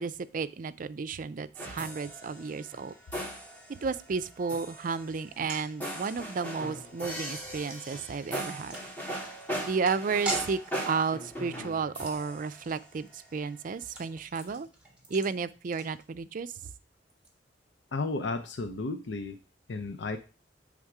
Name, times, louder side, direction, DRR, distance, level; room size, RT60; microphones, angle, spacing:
voice 1, 0.0-2.9 3.8-8.8 9.6-10.6 10.9-14.7 15.1-16.5, right 5 dB, 50° right, 13 dB, 0.4 m, -32 dB
sound 1, 1.5-13.4, right 1 dB, 10° left, 2.9 m, -40 dB
sound 2, 5.2-16.5 16.7-16.8 17.1-17.3, right 2 dB, 5° right, 1.6 m, -43 dB
voice 2, 17.9-19.4 19.7-20.2, left 3 dB, 80° left, 8 dB, 0.5 m, -33 dB
7.7 x 3.6 x 4.7 m, 0.32 s
head